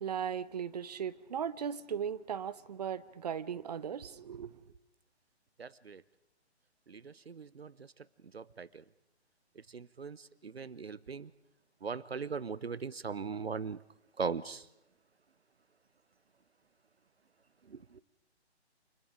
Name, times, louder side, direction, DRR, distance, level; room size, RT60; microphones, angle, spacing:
voice 1, 0.0-4.6, right 8 dB, 35° right, 1.0 m, -37 dB
voice 2, 5.6-6.0 6.9-7.7 8.3-8.7 9.7-10.2 10.4-11.3 11.8-13.8 14.2-14.6 17.7-17.8, right 5 dB, 65° right, 1.0 m, -39 dB
29.5 x 28.5 x 5.0 m
figure-of-eight pair, 140°, 34 cm